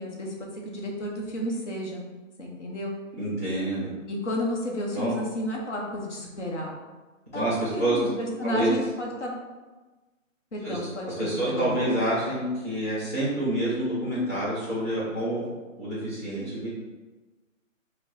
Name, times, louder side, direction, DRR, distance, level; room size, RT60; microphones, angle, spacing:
voice 1, 0.0-2.0 2.4-2.9 4.1-6.7 7.3-9.4 10.5-11.8, left 1 dB, 60° left, -1 dB, 1.1 m, -32 dB
voice 2, 3.2-3.9 4.9-5.1 7.3-8.0 8.4-8.7 10.6-10.8 11.2-15.4 15.8-16.7, right 1 dB, 10° left, -11 dB, 0.7 m, -27 dB
4.6 x 2.3 x 3.8 m, 1.2 s
hypercardioid pair, 170°, 41 cm